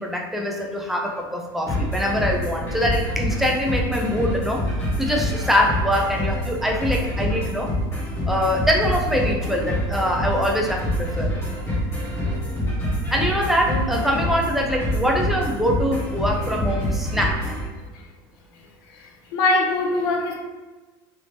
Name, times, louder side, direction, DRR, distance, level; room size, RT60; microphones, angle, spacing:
voice 1, 0.0-4.6 5.0-7.7 8.3-11.3 13.1-17.6, equal, ahead, 0 dB, 0.3 m, -23 dB
sound 1, 1.7-17.6, equal, 20° left, 1.2 m, -26 dB
voice 2, 13.7-14.1 18.9-20.3, left 2 dB, 85° left, 1 dB, 0.7 m, -23 dB
3.3 x 2.8 x 2.7 m, 1.2 s
cardioid pair, 165°, 11 cm